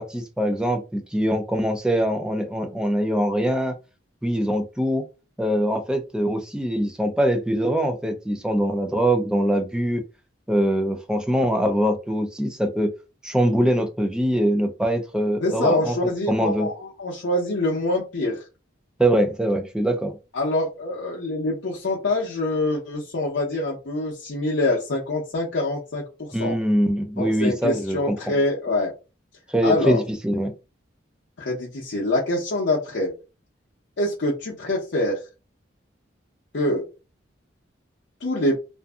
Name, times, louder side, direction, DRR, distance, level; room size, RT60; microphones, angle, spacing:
voice 1, 0.0-3.8 4.2-5.0 5.4-10.0 10.5-12.9 13.2-16.7 19.0-20.2 26.3-28.1 29.5-30.5, equal, 5° right, 6 dB, 0.3 m, -23 dB
voice 2, 15.4-18.4 20.3-26.6 27.2-28.9 29.6-30.0 31.4-33.1 34.0-35.2 36.5-36.8 38.2-38.6, left 1 dB, 65° left, -3 dB, 0.6 m, -25 dB
2.5 x 2.5 x 2.3 m, 0.30 s
head